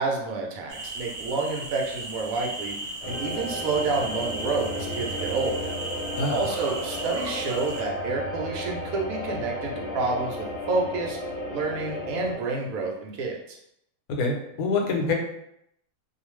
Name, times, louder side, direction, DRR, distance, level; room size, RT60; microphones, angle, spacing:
voice 1, 0.0-2.8 3.1-5.7 6.3-11.2 11.5-13.6, right 3 dB, 75° right, 0 dB, 1.0 m, -29 dB
sound 1, 0.7-7.8, right 2 dB, 55° right, 0.5 m, -36 dB
sound 2, 3.0-12.4, left 1 dB, 50° left, 1.0 m, -34 dB
voice 2, 6.2-6.5 14.1-15.1, left 3 dB, 85° left, 1 dB, 1.1 m, -25 dB
2.4 x 2.3 x 3.1 m, 0.77 s
omnidirectional pair, 1.6 m